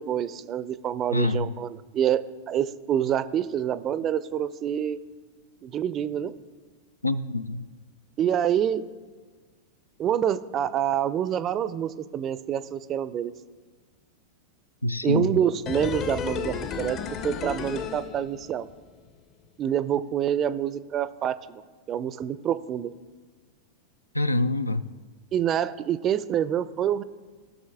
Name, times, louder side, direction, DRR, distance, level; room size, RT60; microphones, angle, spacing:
voice 1, 0.0-5.0 5.6-6.3 8.2-8.8 10.0-13.3 15.0-17.0 17.2-18.7 19.6-21.6 21.9-22.9 25.3-27.0, right 9 dB, 30° right, 15 dB, 0.4 m, -27 dB
voice 2, 1.1-1.5 7.0-7.6 14.8-15.4 24.1-24.8, left 2 dB, 85° left, 14 dB, 0.4 m, -25 dB
sound 1, 15.7-18.8 19.1-19.2, left 7 dB, 35° left, 0.7 m, -33 dB
17.0 x 6.4 x 3.5 m, 1.4 s
figure-of-eight pair, 90°, 0 cm